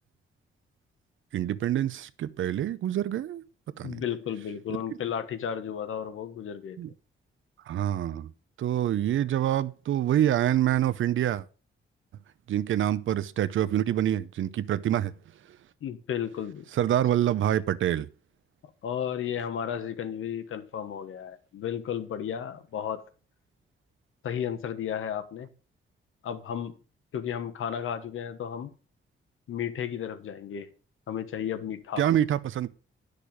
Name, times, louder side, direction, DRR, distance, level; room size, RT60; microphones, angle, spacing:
voice 1, 1.3-3.4 3.8-4.0 6.8-6.9 7.7-8.3 8.6-11.4 12.5-15.1 16.8-18.1 32.0-32.7, right 11 dB, 70° right, 0.6 m, -26 dB
voice 2, 3.8-6.8 15.8-16.7 18.8-23.0 24.2-25.5 26.2-26.7 27.1-28.7 29.5-30.7 31.1-32.1, left 9 dB, 80° left, 1.2 m, -33 dB
10.0 x 6.7 x 5.1 m
wide cardioid pair, 160°, 21 cm